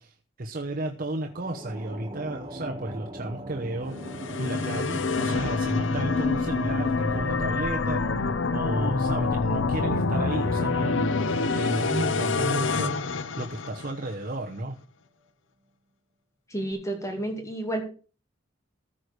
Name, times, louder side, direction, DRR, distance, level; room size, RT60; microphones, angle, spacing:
voice 1, 0.0-8.0 8.5-13.0 13.4-14.8, right 2 dB, 45° right, 3 dB, 0.9 m, -33 dB
sound 1, 1.2-13.8, right 1 dB, 25° right, 1.6 m, -41 dB
sound 2, 3.9-14.1, left 4 dB, 70° left, 0.7 m, -27 dB
voice 2, 16.5-17.8, right 1 dB, 15° left, 4 dB, 2.3 m, -31 dB
14.0 x 4.7 x 6.6 m, 0.37 s
head